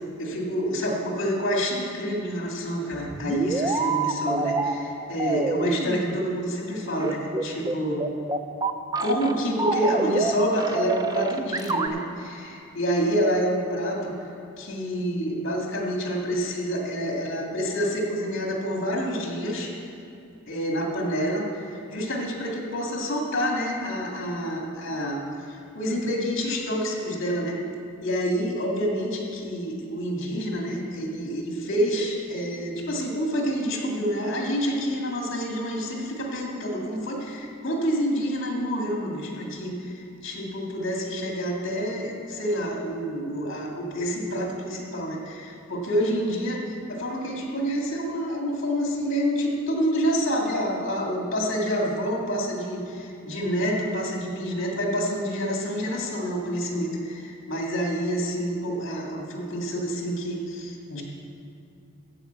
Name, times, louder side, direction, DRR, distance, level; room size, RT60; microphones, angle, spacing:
voice 1, 0.2-8.0 9.0-14.1 14.6-19.7 20.5-25.2 25.5-27.6 28.0-61.0, equal, 60° left, -1 dB, 2.2 m, -28 dB
sound 1, 2.9-4.7 5.2-6.2 7.0-9.3 9.6-10.3 10.6-11.9, right 3 dB, 20° right, 0.4 m, -27 dB
14.0 x 5.0 x 8.0 m, 2.6 s
head